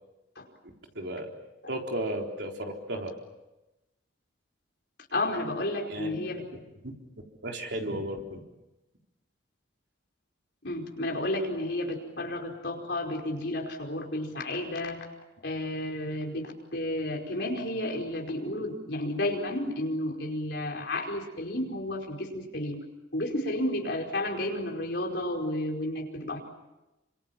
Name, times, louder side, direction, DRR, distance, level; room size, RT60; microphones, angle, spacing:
voice 1, 0.6-1.3 1.7-3.1 5.9-6.2 6.8-6.9 7.4-8.4, right 1 dB, 60° right, 1 dB, 4.1 m, -34 dB
voice 2, 5.1-6.4 10.6-15.0 15.4-22.8 23.1-26.4, left 1 dB, 55° left, 1 dB, 5.1 m, -32 dB
29.0 x 26.0 x 7.4 m, 1.0 s
head